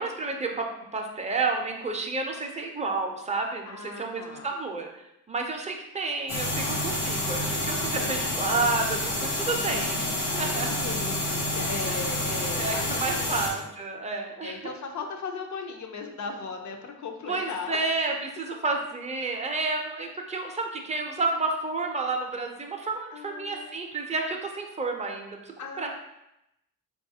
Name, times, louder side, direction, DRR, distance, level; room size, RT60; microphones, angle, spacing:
voice 1, 0.0-4.9 5.3-10.9 11.8-12.0 12.6-14.7 17.3-25.9, right 3 dB, 20° right, 2 dB, 0.5 m, -30 dB
voice 2, 3.7-4.5 7.9-8.5 9.4-10.5 10.8-13.7 14.4-17.8 23.1-23.7 25.6-25.9, left 5 dB, 50° left, 4 dB, 0.6 m, -38 dB
sound 1, 6.3-13.5, left 1 dB, 85° left, 0.9 m, -29 dB
3.9 x 2.3 x 2.7 m, 0.86 s
cardioid pair, 75°, 36 cm